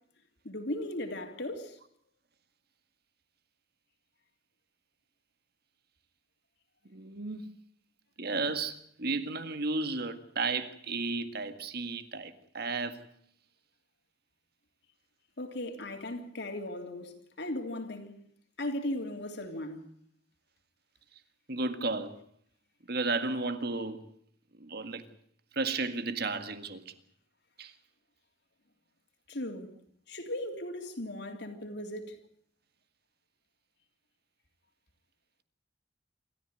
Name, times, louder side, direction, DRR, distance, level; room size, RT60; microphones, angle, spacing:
voice 1, 0.4-1.8 15.4-18.2 18.6-19.9 29.3-29.7 30.1-32.2, left 1 dB, 65° left, 3.3 m, -37 dB
voice 2, 6.9-7.6 8.2-13.0 21.5-22.2 22.9-24.0 24.6-25.0 25.5-26.9 27.6-27.7, right 3 dB, 55° right, 1.8 m, -33 dB
27.0 x 14.0 x 9.0 m
head